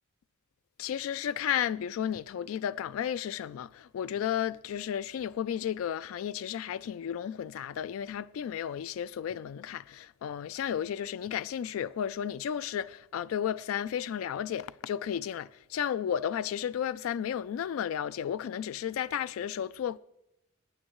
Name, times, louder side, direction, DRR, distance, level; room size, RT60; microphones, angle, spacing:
voice 1, 0.8-20.0, left 9 dB, 85° left, 0.3 m, -33 dB
18.5 x 9.4 x 3.0 m
head